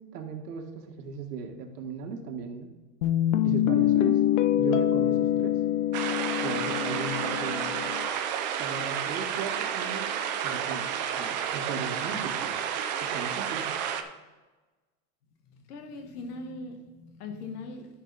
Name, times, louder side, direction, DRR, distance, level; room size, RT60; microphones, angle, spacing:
voice 1, 0.1-2.7 3.4-4.2 4.6-5.6 6.4-8.0 8.6-10.1 10.4-12.5 13.0-13.7, right 5 dB, 80° right, 4 dB, 1.7 m, -37 dB
Guitar, 3.0-8.1, left 12 dB, 50° left, 0.6 m, -25 dB
sound 1, 5.9-14.0, right 8 dB, 30° right, 0.4 m, -31 dB
voice 2, 15.5-17.9, left 3 dB, 75° left, 4 dB, 1.7 m, -40 dB
13.0 x 5.4 x 4.0 m, 1.2 s
supercardioid pair, 165°, 47 cm